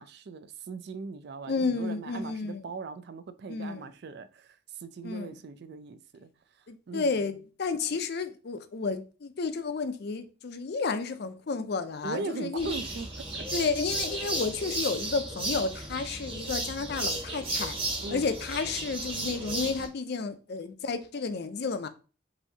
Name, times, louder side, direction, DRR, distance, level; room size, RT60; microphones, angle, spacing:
voice 1, 0.0-6.3 6.9-7.4 12.0-13.5 18.0-18.3, right 4 dB, 55° right, 0.3 m, -40 dB
voice 2, 1.5-2.6 3.5-3.9 5.0-5.3 6.7-12.7 13.5-17.8 18.1-21.9, left 4 dB, 55° left, 0.5 m, -31 dB
sound 1, 12.6-19.9, right 2 dB, 25° right, 1.0 m, -34 dB
5.6 x 2.7 x 2.7 m
head